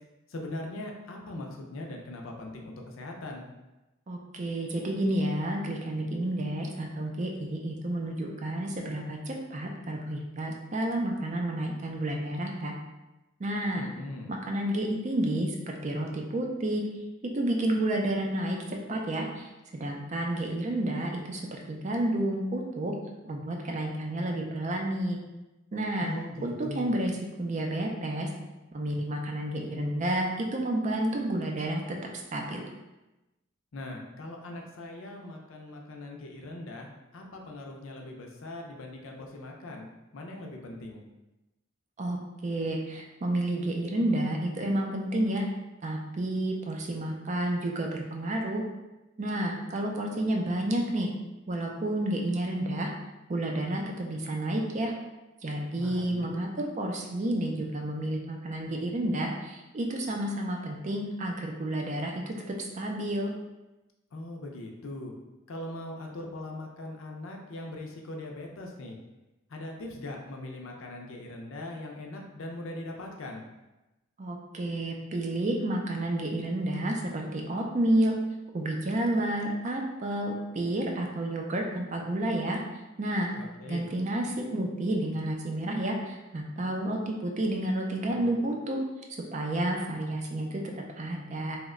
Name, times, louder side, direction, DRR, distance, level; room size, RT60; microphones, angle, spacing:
voice 1, 0.3-3.5 13.7-14.3 26.0-26.9 33.7-39.9 40.1-41.0 55.8-56.4 64.1-65.1 65.5-69.0 69.5-73.4 83.4-83.9, left 1 dB, 70° left, 1 dB, 0.5 m, -40 dB
voice 2, 4.1-12.7 13.4-13.9 14.3-16.8 17.3-22.9 23.2-25.2 25.7-26.1 26.4-28.3 28.7-31.8 32.3-32.7 42.0-42.2 42.4-45.4 45.8-48.6 49.2-51.1 51.5-52.9 53.3-54.9 55.4-63.3 74.2-78.1 78.5-82.6 83.0-83.3 83.7-88.8 89.3-91.6, right 1 dB, 35° right, 1 dB, 0.4 m, -30 dB
2.9 x 2.1 x 3.6 m, 1.0 s
head